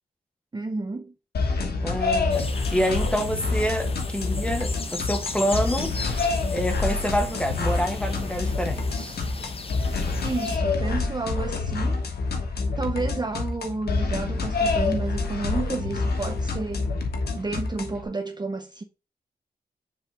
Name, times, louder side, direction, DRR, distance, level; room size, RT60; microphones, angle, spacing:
voice 1, 0.5-1.1 10.2-12.0 12.8-16.9 17.3-18.8, right 3 dB, 25° right, 0.6 m, -31 dB
sound 1, 1.3-18.0, left 3 dB, 85° left, 1.2 m, -27 dB
sound 2, 1.5-9.5, right 4 dB, 85° right, 1.5 m, -47 dB
voice 2, 1.8-2.5 2.7-5.9 6.5-9.2, equal, 5° left, 1.3 m, -27 dB
sound 3, 2.3-10.6, left 4 dB, 35° left, 0.8 m, -37 dB
6.7 x 3.2 x 5.0 m
cardioid pair, 75°, 16 cm